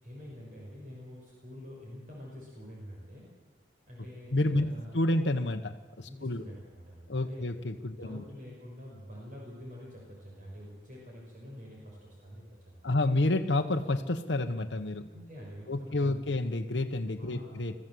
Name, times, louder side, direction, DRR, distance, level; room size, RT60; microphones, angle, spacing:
voice 1, 0.0-3.3 3.9-4.9 6.1-7.5 7.9-12.9 15.1-16.4 17.2-17.5, equal, 45° right, -3 dB, 5.6 m, -47 dB
voice 2, 4.3-4.7 4.9-6.4 7.1-8.2 12.8-15.0 15.7-17.7, left 2 dB, 80° left, 5 dB, 1.0 m, -29 dB
23.0 x 14.5 x 7.7 m, 1.3 s
head